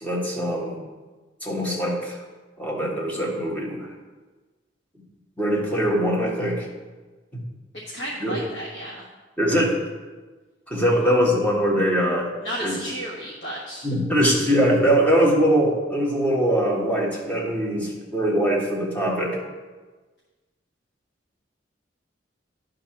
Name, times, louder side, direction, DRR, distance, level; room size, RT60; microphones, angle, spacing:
voice 1, 0.0-0.8 1.4-2.2 2.6-3.9 5.4-6.7 7.3-7.4 8.2-8.4 9.4-9.8 10.7-12.3 12.6-12.7 13.8-19.4, equal, 10° left, -4 dB, 1.5 m, -22 dB
voice 2, 7.9-9.0 10.9-11.1 12.4-13.9, equal, 65° left, -6 dB, 1.4 m, -33 dB
11.0 x 3.8 x 5.9 m, 1.3 s
head